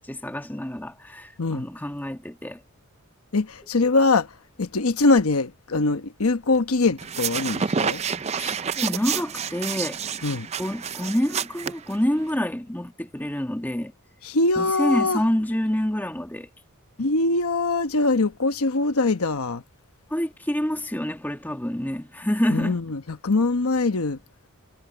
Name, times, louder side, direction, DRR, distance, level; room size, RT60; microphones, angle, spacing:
voice 1, 0.1-2.6 8.2-10.1 10.6-13.9 14.6-16.5 17.0-17.1 20.1-22.8, equal, 10° left, 1.6 m, -27 dB
voice 2, 3.3-4.3 4.6-8.0 10.2-10.5 14.2-15.2 17.0-19.6 22.5-24.2, left 3 dB, 80° left, 1.1 m, -22 dB
sound 1, 7.0-12.3, right 6 dB, 30° right, 0.5 m, -29 dB
head